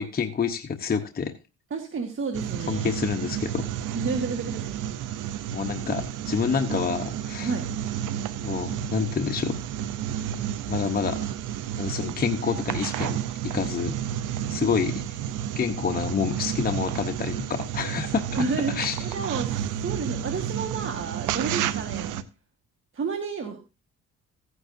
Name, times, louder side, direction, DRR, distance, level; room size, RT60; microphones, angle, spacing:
voice 1, 0.0-1.3 2.7-3.7 5.5-7.5 8.4-9.6 10.7-11.3 11.8-14.0 14.5-15.0 15.6-19.0, left 6 dB, 30° left, 5 dB, 1.0 m, -28 dB
voice 2, 1.7-3.0 3.9-4.8 5.1-5.3 7.4-7.7 18.3-22.2 22.9-23.6, right 4 dB, 40° right, 4 dB, 1.7 m, -31 dB
sound 1, 2.3-22.2, right 10 dB, 90° right, 0.8 m, -31 dB
15.5 x 9.6 x 2.7 m, 0.29 s
cardioid pair, 90°, 30 cm